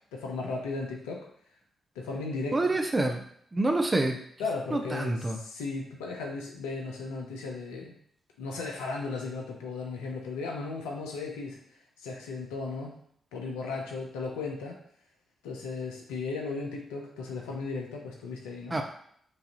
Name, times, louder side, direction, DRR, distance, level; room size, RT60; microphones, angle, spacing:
voice 1, 0.1-1.3 1.9-2.8 4.4-8.0 8.4-11.6 12.0-12.9 13.3-14.8 15.4-18.8, left 4 dB, 85° left, 0 dB, 0.8 m, -36 dB
voice 2, 2.5-3.2 3.5-4.2 4.7-5.4 18.7-18.8, right 2 dB, 30° right, 4 dB, 0.7 m, -27 dB
6.1 x 2.7 x 3.0 m, 0.65 s
hypercardioid pair, 40°, 0 cm